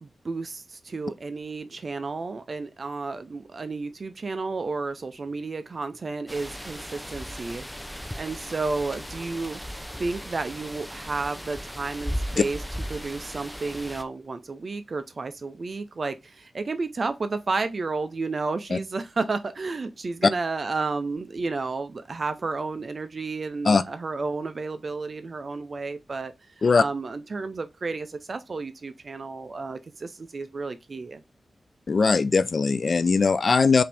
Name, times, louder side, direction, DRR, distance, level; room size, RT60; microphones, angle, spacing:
voice 1, 0.0-9.6 10.0-12.6 12.9-31.2, right 3 dB, 50° right, 0.4 m, -32 dB
sound 1, 6.3-14.0, equal, 5° left, 0.5 m, -36 dB
voice 2, 31.9-33.8, left 4 dB, 55° left, 0.4 m, -20 dB
5.6 x 2.6 x 3.3 m
wide cardioid pair, 80°, 0 cm